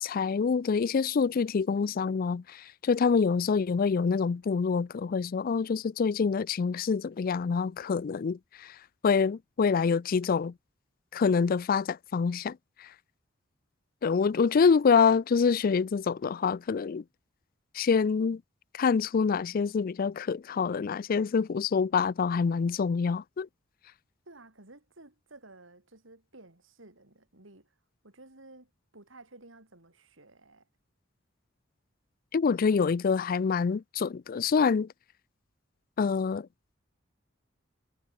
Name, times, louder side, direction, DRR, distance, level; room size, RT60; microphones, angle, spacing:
voice 1, 0.0-8.8 9.0-10.5 11.1-12.9 14.0-17.0 17.7-18.4 18.7-23.5 32.3-34.9 36.0-36.5, left 5 dB, 45° left, 0.4 m, -26 dB
voice 2, 24.2-27.8 28.0-30.7, right 2 dB, 80° right, 4.5 m, -54 dB
head